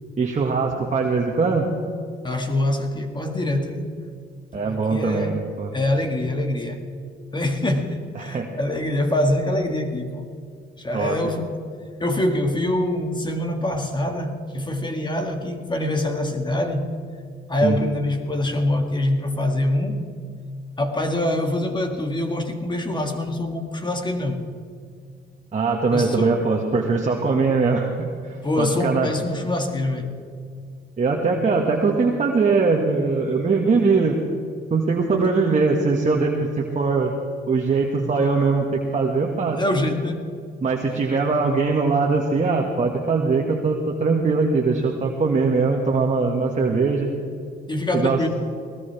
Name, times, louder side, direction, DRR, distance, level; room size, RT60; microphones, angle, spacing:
voice 1, 0.2-1.7 4.5-5.7 8.2-8.5 10.9-11.2 17.6-17.8 25.5-29.1 31.0-34.2 34.7-37.1 37.5-39.6 40.6-47.1 47.9-48.2, right 4 dB, 35° right, 0 dB, 1.8 m, -21 dB
voice 2, 2.2-3.9 4.5-5.4 5.7-6.9 7.3-10.3 10.8-11.6 12.0-16.9 17.5-20.0 20.8-24.5 25.9-26.4 28.4-30.1 35.2-35.3 37.6-37.7 39.5-40.3 47.7-48.3, left 1 dB, 20° left, 4 dB, 2.0 m, -24 dB
20.5 x 19.0 x 3.5 m, 2.3 s
cardioid pair, 90°, 20 cm